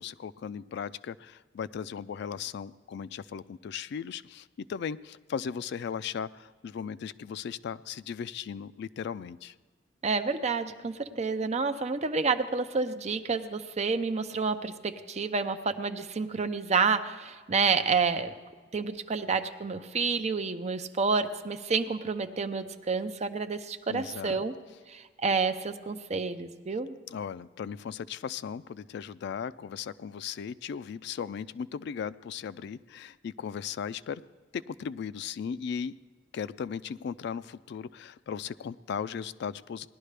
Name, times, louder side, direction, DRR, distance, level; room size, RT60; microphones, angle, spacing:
voice 1, 0.0-9.5 23.9-24.4 27.1-34.2 34.5-36.0 36.3-39.9, left 7 dB, 65° left, 17 dB, 0.3 m, -37 dB
voice 2, 10.0-18.3 18.7-24.5 24.9-26.9, right 4 dB, 35° right, 8 dB, 0.6 m, -29 dB
18.5 x 11.5 x 3.3 m, 1.4 s
head